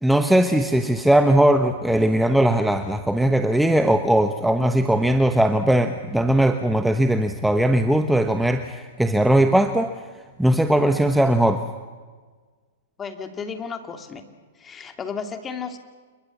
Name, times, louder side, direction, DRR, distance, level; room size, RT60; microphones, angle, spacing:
voice 1, 0.0-9.9 10.4-11.6, right 1 dB, 5° right, 7 dB, 1.2 m, -19 dB
voice 2, 13.0-14.2 14.5-15.8, left 6 dB, 20° left, 7 dB, 2.7 m, -33 dB
29.5 x 22.0 x 7.3 m, 1.4 s
hypercardioid pair, 115°, 0 cm